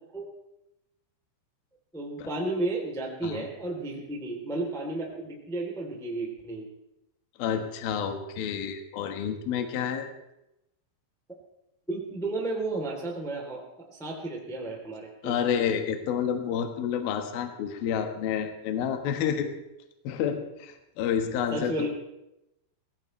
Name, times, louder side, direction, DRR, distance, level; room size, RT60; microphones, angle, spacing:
voice 1, 1.9-6.6 11.9-13.6 13.9-15.3 21.5-21.9, right 2 dB, ahead, -1 dB, 1.7 m, -33 dB
voice 2, 7.4-10.1 15.2-19.5 20.0-21.9, left 8 dB, 65° left, 5 dB, 2.7 m, -29 dB
21.0 x 17.5 x 3.3 m, 0.88 s
omnidirectional pair, 5.7 m